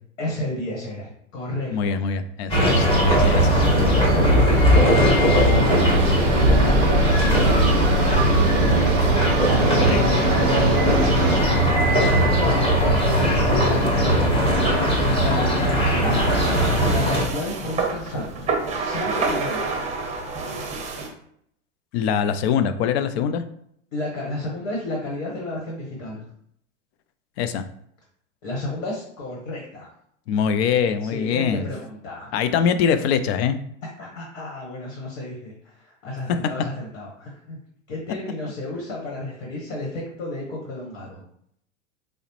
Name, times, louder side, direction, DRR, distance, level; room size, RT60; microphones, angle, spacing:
voice 1, 0.2-1.9 3.5-4.6 5.0-5.5 6.3-7.3 7.9-9.0 9.6-11.3 11.9-13.8 15.0-16.2 16.8-18.5 18.8-19.6 23.9-26.2 28.4-29.9 31.0-32.3 34.0-37.6 37.9-41.2, left 2 dB, 75° left, -2 dB, 1.2 m, -32 dB
voice 2, 1.7-3.5 9.9-10.0 21.9-23.4 27.4-27.6 30.3-31.7 32.3-33.6 36.3-36.4, left 7 dB, 55° left, 10 dB, 0.5 m, -23 dB
sound 1, 2.5-17.2, equal, 15° left, 1.0 m, -18 dB
sound 2, 4.7-11.4, right 7 dB, 70° right, 0.5 m, -29 dB
sound 3, 16.1-21.1, right 4 dB, 20° right, 0.6 m, -28 dB
4.8 x 2.0 x 3.0 m, 0.69 s
hypercardioid pair, 110°, 37 cm